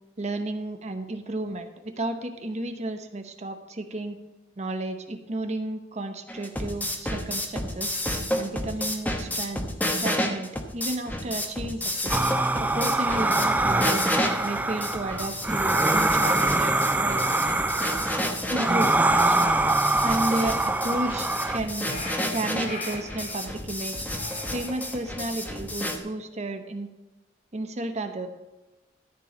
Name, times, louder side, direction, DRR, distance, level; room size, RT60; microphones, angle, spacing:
voice 1, 0.2-4.2 4.6-8.0 8.4-9.7 10.0-12.2 12.6-14.0 14.4-17.3 18.5-19.6 20.0-21.9 22.3-24.0 24.5-26.9 27.5-28.3, right 2 dB, 35° right, 7 dB, 0.8 m, -32 dB
sound 1, 6.3-26.0, left 1 dB, 10° left, 1.0 m, -31 dB
sound 2, 12.1-21.6, right 2 dB, 10° right, 0.4 m, -24 dB
sound 3, 21.3-23.4 24.1-25.3, left 2 dB, 50° left, 3.9 m, -40 dB
13.0 x 4.6 x 7.1 m, 1.1 s
head